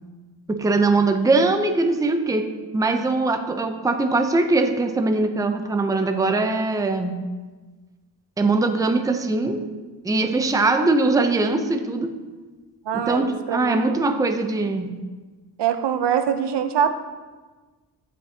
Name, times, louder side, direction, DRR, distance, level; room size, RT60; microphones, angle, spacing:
voice 1, 0.5-7.3 8.4-9.6 10.0-12.2 12.9-14.9, right 3 dB, 10° right, 6 dB, 0.5 m, -21 dB
voice 2, 12.8-14.1 15.6-16.9, right 8 dB, 65° right, 9 dB, 0.7 m, -24 dB
13.0 x 6.0 x 2.8 m, 1.3 s
cardioid pair, 100°, 44 cm